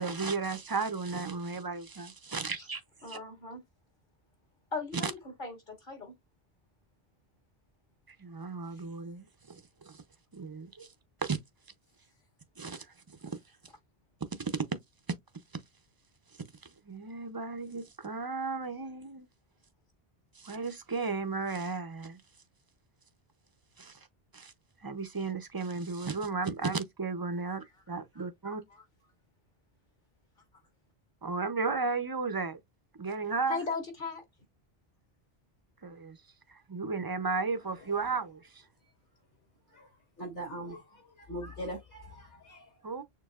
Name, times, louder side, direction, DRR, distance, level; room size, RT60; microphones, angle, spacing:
voice 1, 0.0-3.2 5.0-5.1 8.1-10.0 10.3-10.9 11.2-11.4 12.6-12.9 13.2-13.4 14.4-14.6 16.9-19.3 20.4-22.2 23.8-24.0 24.3-24.5 24.8-28.6 31.2-32.6 32.9-33.6 35.8-36.2 36.5-38.6 42.8-43.0, right 4 dB, 30° right, 0.5 m, -34 dB
voice 2, 3.0-3.6 4.7-6.1 28.4-28.8 33.5-34.2, left 4 dB, 55° left, 1.7 m, -38 dB
voice 3, 37.5-38.2 39.7-39.9 40.2-42.8, equal, 70° left, 3.6 m, -42 dB
6.7 x 2.6 x 2.4 m
omnidirectional pair, 1.1 m